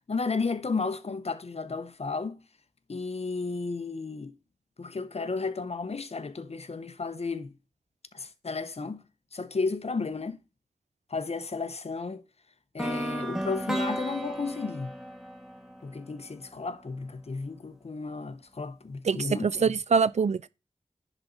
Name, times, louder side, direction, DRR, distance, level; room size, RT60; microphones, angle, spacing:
voice 1, 0.1-2.4 2.9-4.3 4.8-7.5 8.1-9.0 9.3-10.4 11.1-12.2 12.7-15.0 15.8-19.7, left 4 dB, 55° left, 0.8 m, -33 dB
sound 1, 12.8-16.7, equal, 5° right, 1.3 m, -34 dB
voice 2, 19.0-20.5, right 5 dB, 65° right, 0.4 m, -24 dB
10.5 x 4.0 x 3.9 m
wide cardioid pair, 55°, 12 cm